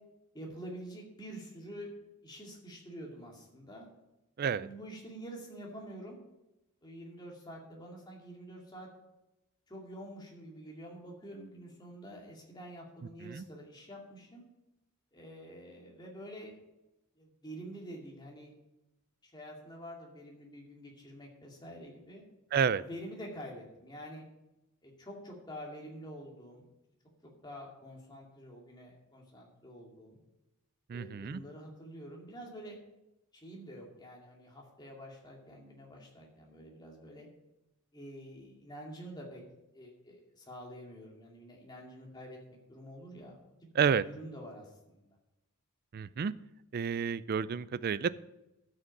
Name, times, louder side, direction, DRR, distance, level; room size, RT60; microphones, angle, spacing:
voice 1, 0.3-1.9 2.2-3.9 4.6-6.2 6.8-8.9 9.7-14.5 15.1-16.6 17.2-18.5 19.2-22.2 22.8-24.2 24.8-26.7 27.2-30.2 30.9-32.8 33.3-37.3 37.9-39.4 39.7-43.4 44.1-45.2, equal, 20° left, -1 dB, 2.3 m, -47 dB
voice 2, 22.5-22.8 30.9-31.4 43.8-44.0 45.9-46.3 46.7-48.1, right 6 dB, 45° right, 17 dB, 0.3 m, -30 dB
13.0 x 6.5 x 5.3 m, 0.93 s
head